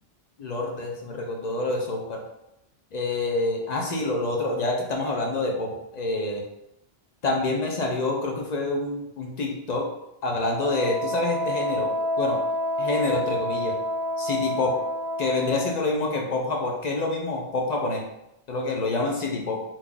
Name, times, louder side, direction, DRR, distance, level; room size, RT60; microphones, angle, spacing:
voice 1, 0.4-2.2 2.9-6.4 7.2-9.9 10.2-12.4 12.8-13.8 14.2-14.8 15.2-18.0 18.5-19.6, left 2 dB, 50° left, 0 dB, 0.6 m, -27 dB
Wind instrument woodwind instrument, 10.6-15.8, left 1 dB, 25° right, 0.8 m, -28 dB
2.9 x 2.4 x 3.7 m, 0.84 s
omnidirectional pair, 1.0 m